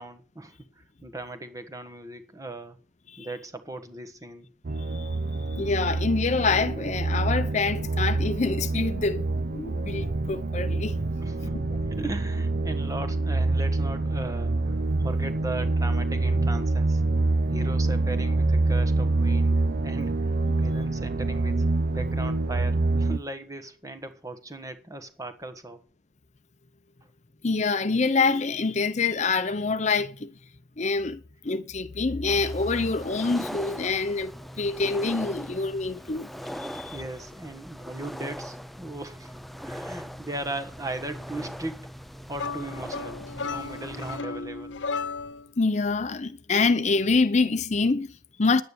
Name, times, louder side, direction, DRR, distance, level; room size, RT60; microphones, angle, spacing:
voice 1, 0.0-2.8 3.2-4.5 11.2-11.6 11.9-17.0 17.5-25.8 36.9-41.9 42.3-44.7, right 2 dB, 20° right, 1.4 m, -38 dB
sound 1, 4.6-23.2, right 2 dB, 55° right, 0.6 m, -26 dB
voice 2, 5.5-11.0 27.4-30.3 30.8-36.3 36.6-37.0 45.6-48.6, left 4 dB, 40° left, 0.7 m, -26 dB
sound 2, 32.3-44.2, equal, ahead, 0.5 m, -40 dB
sound 3, 42.4-45.5, left 4 dB, 80° left, 0.7 m, -34 dB
10.5 x 9.2 x 6.8 m
head